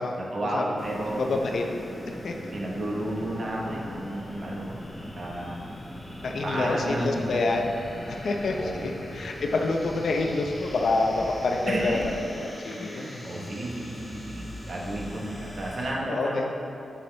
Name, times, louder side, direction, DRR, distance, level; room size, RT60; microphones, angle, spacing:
voice 1, 0.2-1.3 2.5-4.8 5.1-5.6 6.4-7.4 8.6-8.9 11.7-12.0 12.8-16.5, right 1 dB, 45° right, -3 dB, 1.1 m, -32 dB
sound 1, 0.8-15.9, equal, 20° left, 1.2 m, -40 dB
voice 2, 1.1-1.6 2.1-2.3 6.2-7.7 8.1-12.0 12.3-13.1 16.1-16.5, left 3 dB, 65° left, 2 dB, 0.6 m, -27 dB
7.1 x 6.8 x 3.3 m, 2.8 s
wide cardioid pair, 150°, 0 cm